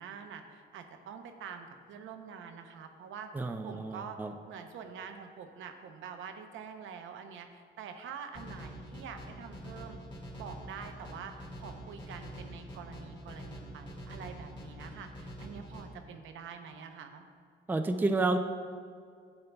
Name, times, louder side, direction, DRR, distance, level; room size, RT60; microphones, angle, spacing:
voice 1, 0.0-3.3 3.6-4.2 4.5-10.0 10.4-17.2, right 6 dB, 75° right, 6 dB, 0.7 m, -46 dB
voice 2, 3.3-4.3 17.7-18.4, right 2 dB, 10° right, 6 dB, 0.4 m, -30 dB
sound 1, 8.3-15.8, equal, 25° left, 1.8 m, -45 dB
10.5 x 6.8 x 2.2 m, 2.2 s
cardioid pair, 90°, 20 cm